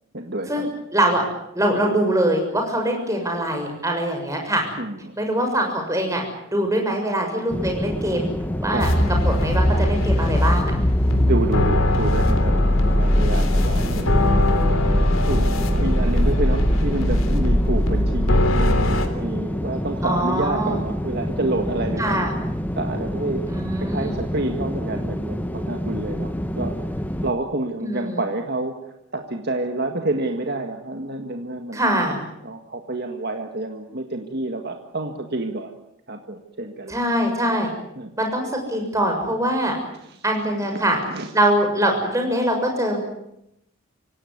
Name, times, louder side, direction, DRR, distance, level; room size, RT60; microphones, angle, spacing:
voice 1, 0.1-0.7 4.8-5.1 8.7-8.9 11.1-14.8 15.2-22.3 22.8-23.4 23.8-26.8 27.2-28.7 29.1-31.8 32.4-35.7 36.1-37.0 38.0-38.1 40.0-40.2 40.5-41.3, right 2 dB, 45° right, 4 dB, 1.9 m, -29 dB
voice 2, 0.9-1.2 1.5-4.6 5.2-6.2 6.5-8.3 8.6-10.7 20.0-20.8 22.0-22.3 23.5-24.1 27.8-28.2 31.7-32.2 36.9-37.7 38.2-39.7 40.2-41.0 41.3-43.0, right 1 dB, 15° right, 2 dB, 6.8 m, -23 dB
sound 1, 7.5-27.3, equal, 10° left, 1.3 m, -28 dB
sound 2, 8.8-19.1, left 1 dB, 70° left, 3.4 m, -20 dB
26.0 x 17.5 x 9.6 m, 0.82 s
head